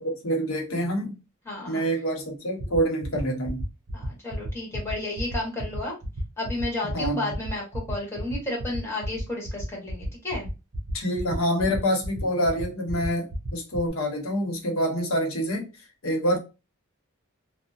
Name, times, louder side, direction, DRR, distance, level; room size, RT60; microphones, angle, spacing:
voice 1, 0.0-1.2 1.6-3.6 6.9-7.4 10.9-15.7 16.0-16.4, equal, 75° left, 0.9 m, -26 dB
voice 2, 1.4-1.9 3.9-5.9 6.4-10.5, left 2 dB, 15° left, 1.2 m, -32 dB
sound 1, 2.6-13.9, right 1 dB, 70° right, 0.6 m, -34 dB
2.7 x 2.0 x 2.4 m
head